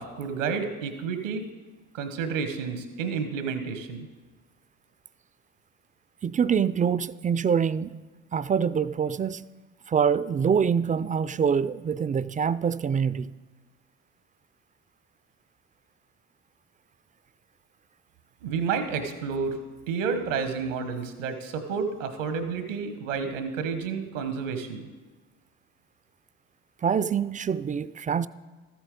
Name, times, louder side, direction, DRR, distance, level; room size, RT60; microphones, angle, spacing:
voice 1, 0.0-1.4 1.9-4.1 18.4-19.6 19.9-24.9, right 5 dB, 90° right, 1.2 m, -30 dB
voice 2, 6.2-8.0 8.3-9.5 9.9-13.3 26.8-28.3, right 7 dB, 20° right, 0.3 m, -25 dB
13.5 x 8.3 x 5.3 m
hypercardioid pair, 60°, 37 cm